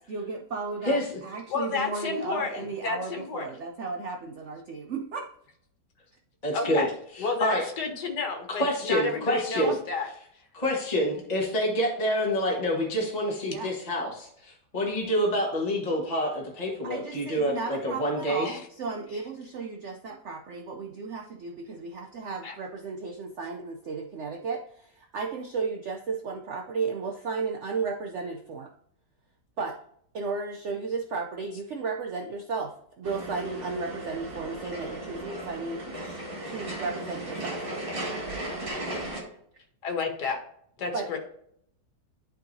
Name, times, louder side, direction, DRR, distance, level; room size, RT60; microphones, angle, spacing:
voice 1, 0.0-5.3 9.5-9.8 13.5-13.7 16.8-28.7 29.6-29.8 30.1-37.7 40.9-41.2, right 4 dB, 65° right, 3 dB, 0.7 m, -34 dB
voice 2, 1.5-3.5 6.5-6.9 7.2-10.1 18.4-18.6 22.4-22.6 39.8-40.4 40.8-41.2, left 4 dB, 75° left, 3 dB, 1.8 m, -31 dB
voice 3, 6.4-6.9 7.4-7.6 8.6-9.7 10.5-18.5, equal, 25° left, -3 dB, 1.3 m, -27 dB
sound 1, 33.0-39.2, right 1 dB, 30° right, 2.0 m, -36 dB
11.5 x 3.8 x 2.7 m, 0.68 s
omnidirectional pair, 1.9 m